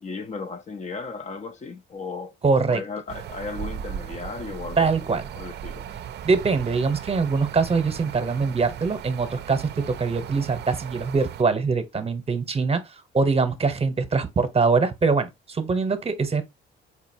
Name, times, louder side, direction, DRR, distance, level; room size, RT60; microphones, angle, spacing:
voice 1, 0.0-2.3 2.7-5.0 5.3-5.9, left 4 dB, 35° left, 0.5 m, -35 dB
voice 2, 2.4-2.8 4.8-5.3 6.2-16.4, right 4 dB, 30° right, 0.9 m, -23 dB
sound 1, 3.1-11.4, right 9 dB, 60° right, 0.5 m, -37 dB
4.8 x 2.8 x 2.7 m
cardioid pair, 90°, 20 cm